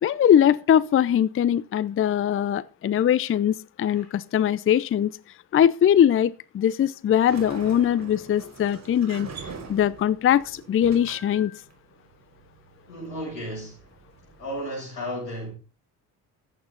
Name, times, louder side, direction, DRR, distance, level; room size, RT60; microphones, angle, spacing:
voice 1, 0.0-5.1 5.5-9.3 9.7-11.5, left 10 dB, 25° left, 0.6 m, -21 dB
voice 2, 3.8-4.1 9.4-9.8 12.9-13.8 14.4-15.5, equal, 90° left, 7.2 m, -34 dB
Sliding door, 7.0-14.6, right 4 dB, 35° right, 4.6 m, -44 dB
14.5 x 9.4 x 4.0 m
figure-of-eight pair, 50°, 48 cm